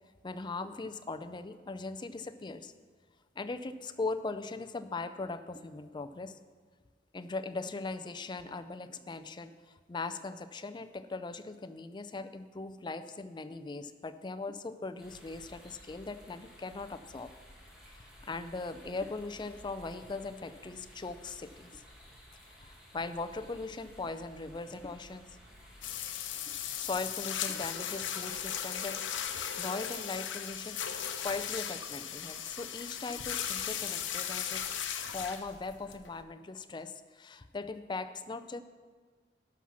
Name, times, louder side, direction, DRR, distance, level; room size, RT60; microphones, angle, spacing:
voice 1, 0.2-2.7 3.4-6.4 7.1-17.3 17.9-21.8 22.6-25.3 26.8-30.8 31.2-34.6 35.1-38.6, left 3 dB, 25° left, 10 dB, 0.4 m, -40 dB
sound 1, 15.0-25.9, equal, 5° right, 2.1 m, -55 dB
sound 2, 25.8-36.2, left 9 dB, 75° left, 0.8 m, -37 dB
11.5 x 5.7 x 6.2 m, 1.5 s
head